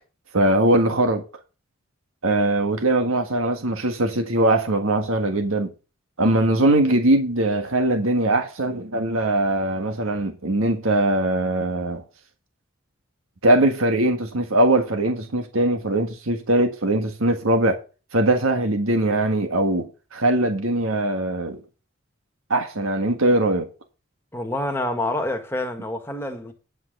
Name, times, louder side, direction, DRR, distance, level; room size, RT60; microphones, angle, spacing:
voice 1, 0.3-1.2 2.2-5.7 6.2-12.0 13.4-17.8 18.1-21.6 22.5-23.7, right 1 dB, 90° right, 1.6 m, -21 dB
voice 2, 24.3-26.5, left 1 dB, 10° left, 1.6 m, -27 dB
10.0 x 5.6 x 6.6 m
head